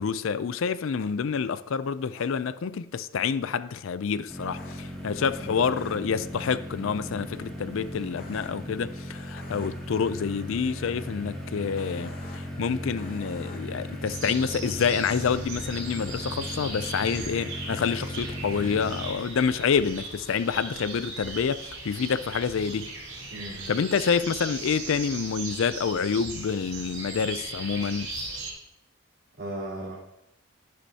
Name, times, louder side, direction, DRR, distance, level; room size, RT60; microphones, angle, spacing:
voice 1, 0.0-22.9 23.7-28.1, left 6 dB, 65° left, 0.4 m, -28 dB
sound 1, 1.0-1.1 2.2-2.3 4.6-4.7 5.8-5.9 8.2-8.5 9.4-9.7 11.8-12.4 13.0-13.6, left 3 dB, 45° left, 1.1 m, -47 dB
sound 2, 4.3-19.1, equal, ahead, 2.3 m, -37 dB
sound 3, 14.1-28.5, right 3 dB, 75° right, 4.2 m, -38 dB
voice 2, 23.3-23.7 29.4-30.0, right 1 dB, 50° right, 3.9 m, -36 dB
11.5 x 10.5 x 2.8 m
head